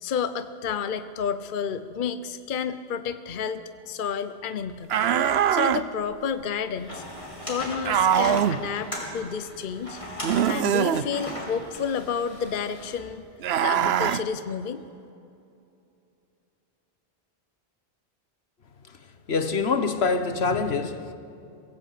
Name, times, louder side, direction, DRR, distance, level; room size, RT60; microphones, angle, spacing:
voice 1, 0.0-4.9 5.1-7.0 7.4-10.0 10.3-13.3 13.6-14.8, left 7 dB, 55° left, 0.9 m, -31 dB
sound 1, 4.9-5.8 7.8-8.6 10.2-11.1 13.4-14.2, right 9 dB, 75° right, 0.9 m, -22 dB
sound 2, 6.8-13.0, equal, 30° left, 4.2 m, -38 dB
voice 2, 18.8-21.1, left 4 dB, 80° left, 1.5 m, -26 dB
22.5 x 16.0 x 8.3 m
omnidirectional pair, 1.1 m